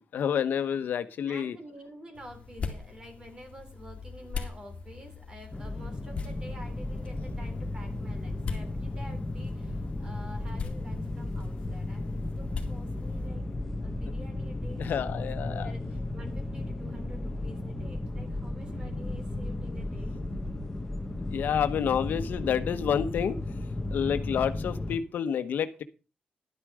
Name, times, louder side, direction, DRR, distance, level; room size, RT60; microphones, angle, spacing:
voice 1, 0.0-1.6 14.8-15.7 21.3-23.4 23.9-25.8, left 8 dB, 85° left, 10 dB, 1.0 m, -29 dB
voice 2, 1.3-13.4 13.8-20.2, equal, 30° right, 5 dB, 3.5 m, -49 dB
sound 1, 2.1-13.3, left 5 dB, 45° left, 2.3 m, -42 dB
sound 2, 5.5-25.0, left 2 dB, 15° left, 1.2 m, -34 dB
12.0 x 9.9 x 4.8 m, 0.31 s
wide cardioid pair, 180°, 3 cm